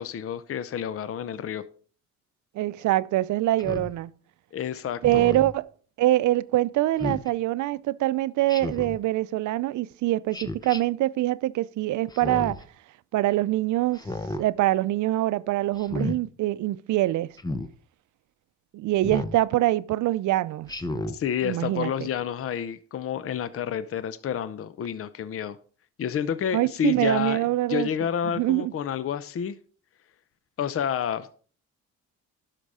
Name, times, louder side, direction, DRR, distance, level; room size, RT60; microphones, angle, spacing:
voice 1, 0.0-1.6 4.5-5.2 21.1-25.6 26.0-27.4 27.7-29.6 30.6-31.3, left 8 dB, 50° left, 0.7 m, -29 dB
voice 2, 2.5-4.1 5.0-5.7 6.0-12.6 13.1-14.0 14.4-17.4 18.7-20.7 21.4-22.1 26.5-27.9 28.2-28.7, right 16 dB, 75° right, 0.5 m, -24 dB
Speech synthesizer, 3.6-3.9 5.0-5.5 7.0-7.3 8.5-9.0 10.3-10.8 12.1-12.6 13.9-14.4 15.8-16.2 17.4-17.7 19.0-19.4 20.7-21.2, left 2 dB, 15° left, 0.9 m, -32 dB
11.5 x 5.9 x 4.9 m
cardioid pair, 90°, 30 cm